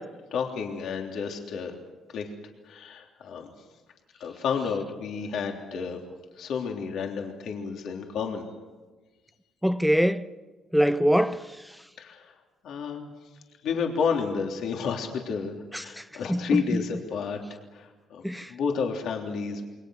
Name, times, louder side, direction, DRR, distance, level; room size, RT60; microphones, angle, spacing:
voice 1, 0.3-1.7 2.1-2.2 2.7-3.5 4.2-6.0 6.4-8.4 12.0-12.3 12.6-13.1 13.6-17.4 17.7-18.2 18.5-19.7, left 6 dB, 65° left, 3.3 m, -31 dB
voice 2, 9.6-10.3 10.7-11.4 15.7-15.8 16.3-16.8 18.2-18.5, equal, ahead, 0.8 m, -23 dB
28.0 x 24.0 x 6.5 m
cardioid pair, 170°, 0 cm